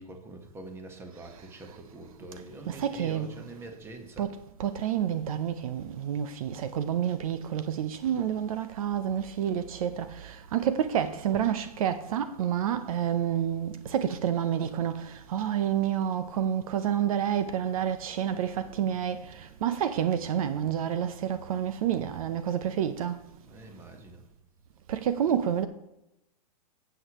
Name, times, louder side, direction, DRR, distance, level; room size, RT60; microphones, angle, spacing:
voice 1, 0.0-4.3 23.4-24.3, right 2 dB, 10° right, 1.3 m, -45 dB
voice 2, 2.7-3.3 4.2-4.3 4.6-23.2 24.9-25.7, right 9 dB, 60° right, 0.7 m, -29 dB
12.0 x 8.0 x 3.1 m
hypercardioid pair, 140°, 20 cm